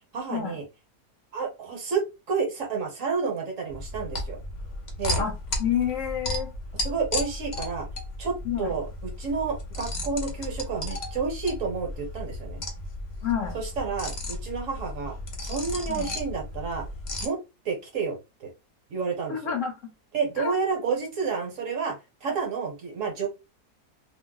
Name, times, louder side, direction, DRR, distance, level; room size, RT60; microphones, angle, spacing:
voice 1, 0.1-0.6 1.3-4.4 5.0-5.2 6.8-7.9 8.2-12.6 13.5-15.2 15.4-16.8 17.2-17.4 17.6-18.5 18.9-19.4 20.1-22.0 22.2-23.3, right 5 dB, 60° right, 2 dB, 1.2 m, -30 dB
sound 1, 3.7-17.3, left 1 dB, 45° left, 0.6 m, -34 dB
voice 2, 5.6-6.5 8.4-8.7 13.2-13.6 15.9-16.1 19.3-19.7 20.4-20.5, left 9 dB, 60° left, 3 dB, 1.0 m, -28 dB
2.7 x 2.0 x 3.7 m, 0.26 s
omnidirectional pair, 1.6 m